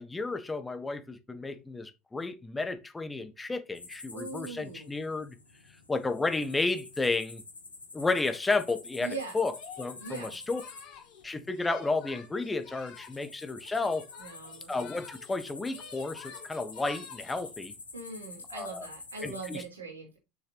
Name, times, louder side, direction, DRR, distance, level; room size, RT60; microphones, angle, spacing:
voice 1, 0.0-5.3 5.9-7.4 7.9-9.5 9.8-10.6 11.2-14.0 14.7-17.7 18.5-18.9 19.2-19.6, left 3 dB, 15° left, 1.3 m, -32 dB
sound 1, 3.7-19.6, left 3 dB, 90° left, 1.6 m, -48 dB
voice 2, 4.1-4.9 9.0-9.3 10.0-10.4 14.2-14.7 17.9-20.2, right 4 dB, 85° right, 3.7 m, -41 dB
Singing, 9.5-13.3 13.6-15.4 15.6-17.5, left 6 dB, 50° left, 3.5 m, -49 dB
6.7 x 6.6 x 3.0 m
figure-of-eight pair, 75°, 0 cm